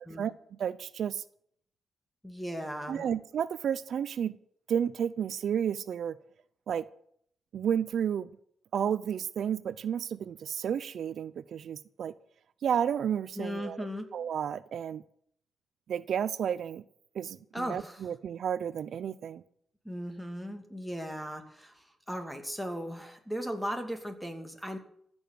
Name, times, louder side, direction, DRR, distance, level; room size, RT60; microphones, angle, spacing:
voice 1, 0.2-1.2 2.9-4.4 4.7-6.2 6.7-6.9 7.5-8.3 8.7-12.1 12.6-13.9 14.1-15.0 15.9-16.8 17.1-19.4, right 8 dB, 70° right, 16 dB, 0.6 m, -32 dB
voice 2, 2.2-3.1 13.4-14.1 17.5-18.0 19.8-24.8, equal, ahead, 6 dB, 2.6 m, -37 dB
15.0 x 7.1 x 9.5 m, 0.66 s
cardioid pair, 105°, 0 cm